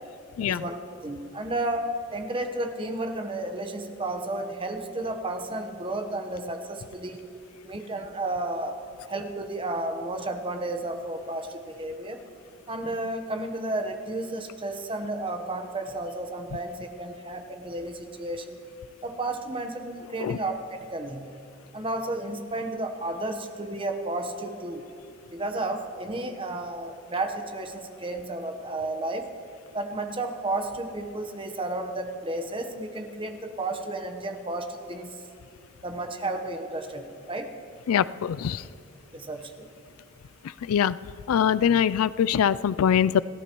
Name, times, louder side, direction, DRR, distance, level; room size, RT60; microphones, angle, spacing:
voice 1, 0.4-0.8 1.0-7.2 7.6-8.7 9.0-12.2 12.7-18.6 19.0-21.3 21.7-24.8 25.3-29.3 29.7-35.2 35.8-37.5 39.1-39.7, right 2 dB, 25° right, 5 dB, 1.0 m, -32 dB
voice 2, 37.9-38.7 40.4-41.0 41.3-43.2, left 8 dB, 90° left, 18 dB, 0.4 m, -23 dB
30.0 x 13.0 x 3.1 m, 2.7 s
head